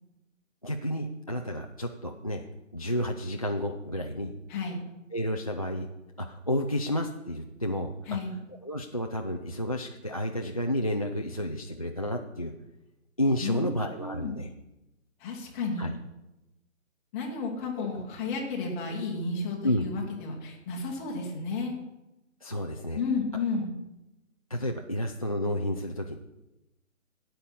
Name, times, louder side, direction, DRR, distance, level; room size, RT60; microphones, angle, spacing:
voice 1, 0.6-2.5 2.7-4.3 5.1-5.9 6.2-7.9 8.6-12.5 13.2-14.5 15.8-15.9 17.8-18.0 19.6-19.9 22.4-23.0 24.5-26.2, equal, 30° left, 2 dB, 0.4 m, -31 dB
voice 2, 4.5-4.8 8.1-8.4 13.4-14.4 15.2-15.9 17.1-21.8 22.9-23.7, left 4 dB, 10° left, -1 dB, 1.1 m, -32 dB
13.0 x 9.1 x 5.4 m, 0.98 s
figure-of-eight pair, 145°, 40 cm